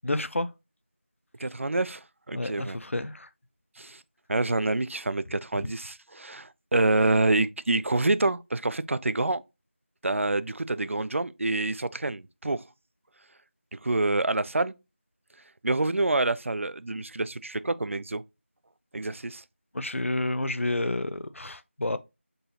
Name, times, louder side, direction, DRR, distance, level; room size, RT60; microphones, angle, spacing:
voice 1, 0.0-0.5 2.3-3.3 5.5-5.6 19.7-22.0, left 2 dB, 90° left, 0.5 m, -30 dB
voice 2, 1.4-2.8 3.8-4.0 4.3-9.4 10.0-12.6 13.7-14.7 15.6-18.2 18.9-19.4, right 2 dB, 85° right, 0.3 m, -27 dB
3.9 x 3.9 x 2.7 m
figure-of-eight pair, 175°, 7 cm